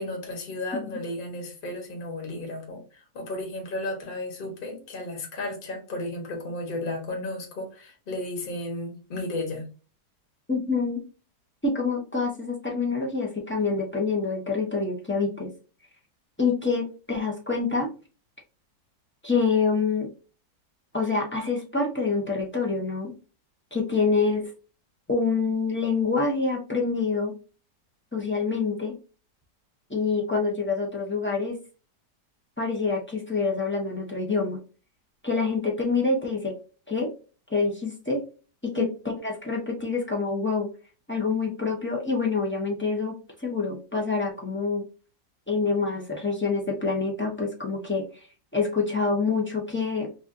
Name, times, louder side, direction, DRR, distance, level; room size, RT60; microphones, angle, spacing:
voice 1, 0.0-9.6 38.7-38.9, left 2 dB, 35° left, 0 dB, 1.3 m, -33 dB
voice 2, 10.5-11.0 11.6-15.5 16.4-17.9 19.2-20.1 20.9-23.1 23.7-24.5 25.1-27.3 28.1-28.9 29.9-31.6 32.6-34.6 35.2-36.5 36.9-37.1 37.5-38.2 38.6-38.9 39.2-40.7 41.1-43.1 43.4-44.8 45.5-48.2 48.5-50.1, left 4 dB, 15° left, -2 dB, 0.4 m, -26 dB
5.0 x 2.5 x 2.6 m, 0.35 s
omnidirectional pair, 1.8 m